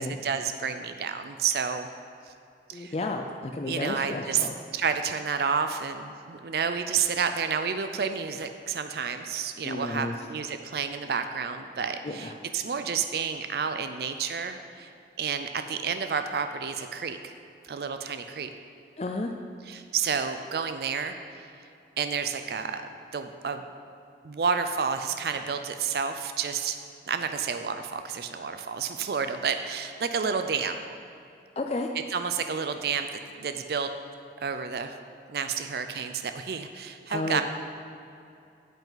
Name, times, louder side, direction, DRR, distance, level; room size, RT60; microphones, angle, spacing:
voice 1, 0.0-1.9 2.7-2.9 3.7-4.5 4.7-14.9 15.2-17.3 17.6-18.5 19.7-21.2 22.0-22.8 23.1-23.6 24.2-26.8 27.1-30.9 32.1-33.9 34.4-35.0 35.3-37.4, right 6 dB, 60° right, 8 dB, 0.4 m, -30 dB
voice 2, 2.7-4.5 9.6-10.1 12.0-12.3 19.0-19.3 31.6-31.9 37.1-37.4, left 2 dB, 35° left, 3 dB, 0.4 m, -32 dB
8.9 x 8.0 x 4.0 m, 2.6 s
head